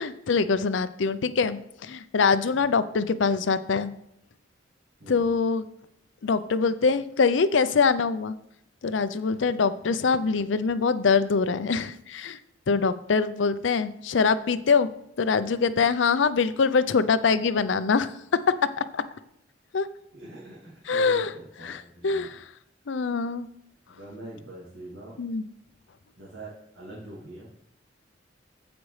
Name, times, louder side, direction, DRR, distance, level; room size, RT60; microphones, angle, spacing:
voice 1, 0.0-3.9 5.1-5.7 6.2-8.3 8.8-12.4 12.7-14.9 15.2-18.1 18.8-19.0 19.7-19.8 20.9-21.3 21.6-21.8 22.0-22.4 22.9-23.5 25.2-25.4, left 5 dB, 75° left, 13 dB, 0.5 m, -24 dB
voice 2, 20.1-22.3 23.9-25.2 26.2-27.5, right 1 dB, 85° right, -6 dB, 2.5 m, -43 dB
15.0 x 5.1 x 3.2 m, 0.77 s
head